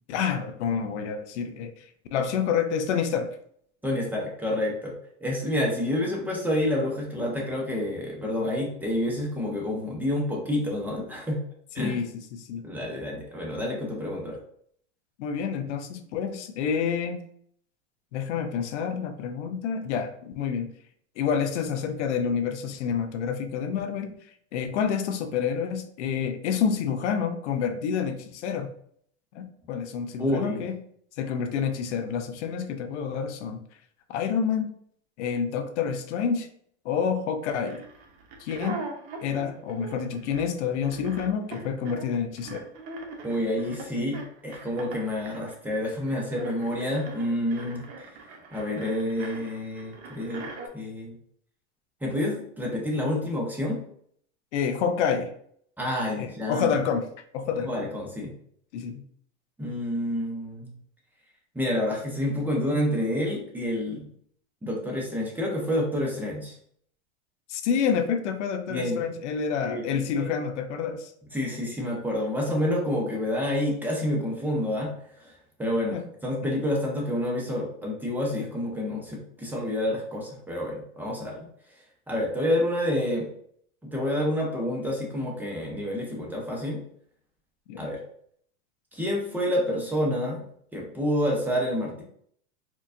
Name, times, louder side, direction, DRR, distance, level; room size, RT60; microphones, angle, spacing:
voice 1, 0.1-3.3 11.8-12.6 15.2-17.2 18.1-20.7 21.2-24.1 24.5-28.7 29.3-30.8 31.2-33.6 34.1-34.7 35.2-36.5 36.8-37.8 38.4-38.8 39.2-42.6 54.5-55.3 56.2-57.1 57.3-57.9 58.7-59.0 67.5-71.1 75.9-76.0 87.7-87.9, left 7 dB, 80° left, 7 dB, 0.6 m, -28 dB
voice 2, 3.8-4.9 5.2-11.4 11.7-12.0 12.6-14.4 30.2-30.6 43.2-48.1 48.5-50.5 50.7-51.1 52.0-53.8 55.8-56.7 57.7-58.3 59.6-60.7 61.5-64.1 64.6-66.6 68.7-69.1 69.6-70.3 71.3-74.9 75.2-81.4 82.1-83.3 83.8-86.8 87.8-88.0 88.9-90.4 90.7-92.0, left 1 dB, 5° right, -2 dB, 0.7 m, -28 dB
sound 1, 37.6-50.7, right 3 dB, 50° right, 0.8 m, -41 dB
4.4 x 2.3 x 2.5 m, 0.64 s
supercardioid pair, 135°, 35 cm